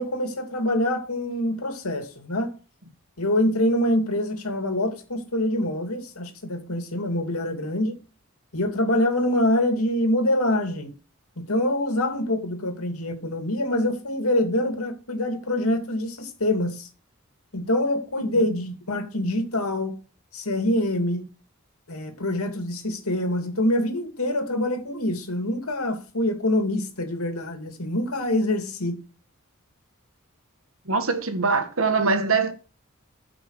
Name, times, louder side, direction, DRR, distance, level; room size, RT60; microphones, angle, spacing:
voice 1, 0.0-2.5 3.2-8.0 8.5-10.9 11.4-16.9 17.5-20.0 20.3-21.2 21.9-29.0, left 1 dB, 90° left, 2.6 m, -25 dB
voice 2, 30.8-32.5, right 4 dB, 70° right, 1.7 m, -23 dB
14.0 x 6.1 x 4.9 m
head